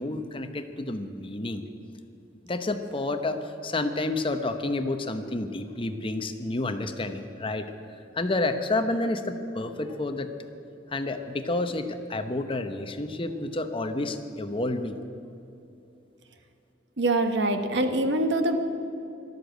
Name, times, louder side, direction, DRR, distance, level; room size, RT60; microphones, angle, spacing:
voice 1, 0.0-1.6 2.4-7.7 8.1-10.3 10.9-15.0, left 2 dB, 30° left, 8 dB, 0.9 m, -30 dB
voice 2, 17.0-18.6, right 2 dB, 75° right, 7 dB, 1.2 m, -24 dB
13.0 x 12.5 x 8.0 m, 2.8 s
head